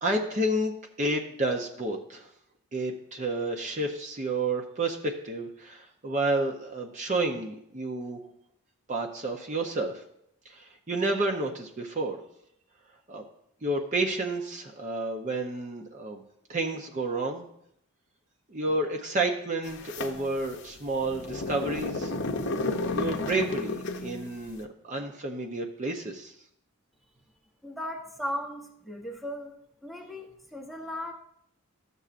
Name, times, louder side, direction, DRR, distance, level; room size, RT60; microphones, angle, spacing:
voice 1, 0.0-2.3 2.7-8.2 8.9-10.0 10.5-12.2 13.1-13.2 13.6-16.2 16.5-17.5 18.5-22.1 22.8-26.3, right 2 dB, 35° right, 2 dB, 0.6 m, -30 dB
sound 1, 19.6-24.3, left 3 dB, 55° left, 0.6 m, -32 dB
voice 2, 27.6-29.5 29.8-31.1, equal, ahead, 1 dB, 0.8 m, -37 dB
13.0 x 6.8 x 2.5 m, 0.74 s
head